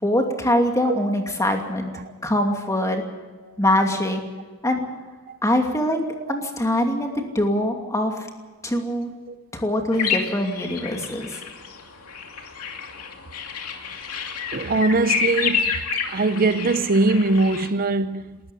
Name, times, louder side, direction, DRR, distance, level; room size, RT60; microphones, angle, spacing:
voice 1, 0.0-1.9 2.2-3.0 3.6-4.2 4.6-4.9 5.4-6.0 6.3-8.3 8.6-9.1 9.5-11.4, left 1 dB, 15° left, 2.6 m, -23 dB
sound 1, 9.9-17.7, left 6 dB, 85° left, 2.6 m, -29 dB
voice 2, 14.5-15.8 16.1-18.4, right 3 dB, 40° right, 0.6 m, -21 dB
20.0 x 14.0 x 9.9 m
head